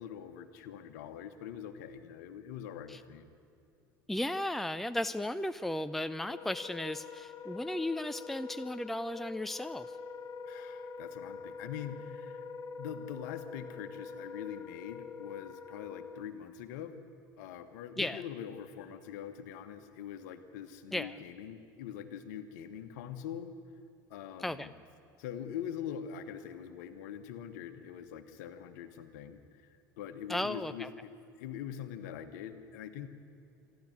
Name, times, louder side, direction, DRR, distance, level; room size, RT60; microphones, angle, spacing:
voice 1, 0.0-3.3 10.4-12.4 12.8-17.0 17.4-23.5 24.1-24.7 25.2-33.1, left 9 dB, 60° left, 10 dB, 1.5 m, -43 dB
voice 2, 4.1-9.9 18.0-18.2 20.9-21.2 24.4-24.7 30.3-30.9, left 1 dB, ahead, 13 dB, 0.6 m, -35 dB
Wind instrument woodwind instrument, 6.2-16.3, left 5 dB, 35° left, 1.2 m, -45 dB
27.5 x 12.0 x 9.6 m, 2.6 s
figure-of-eight pair, 70°, 11 cm